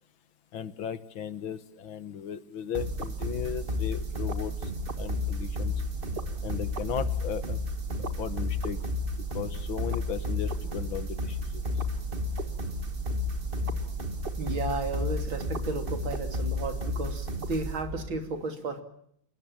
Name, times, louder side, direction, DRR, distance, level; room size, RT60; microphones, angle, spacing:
voice 1, 0.5-4.7 5.0-5.7 6.4-7.6 8.2-8.8 9.3-11.6, left 8 dB, 75° left, 13 dB, 2.1 m, -36 dB
sound 1, 2.7-18.2, left 1 dB, 30° right, 1.7 m, -32 dB
voice 2, 14.4-18.8, right 3 dB, 70° right, 7 dB, 3.6 m, -33 dB
30.0 x 18.5 x 7.2 m, 0.69 s
omnidirectional pair, 2.2 m